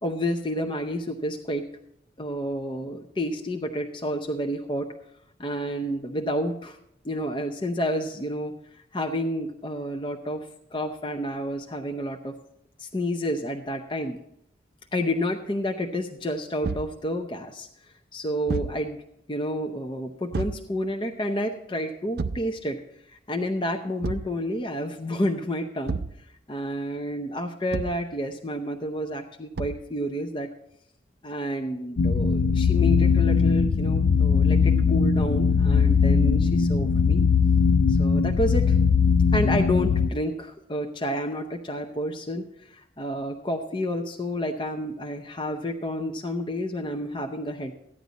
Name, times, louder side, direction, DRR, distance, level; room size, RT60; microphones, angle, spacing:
voice 1, 0.0-1.7 2.2-4.9 5.4-6.8 7.0-8.5 8.9-10.5 10.7-12.4 12.8-14.2 14.9-17.7 18.1-19.0 19.3-22.8 23.1-26.0 26.5-30.5 31.2-37.2 37.9-38.8 39.3-47.7, equal, 25° left, 3 dB, 0.7 m, -30 dB
Thump thud, 16.6-17.0 18.5-18.8 20.3-20.7 22.2-22.5 24.0-24.4 25.9-26.2 27.7-28.1 29.6-29.9, right 4 dB, 55° right, 0.5 m, -30 dB
sound 1, 32.0-40.1, left 5 dB, 85° left, 0.5 m, -20 dB
14.5 x 9.9 x 4.0 m, 0.75 s
head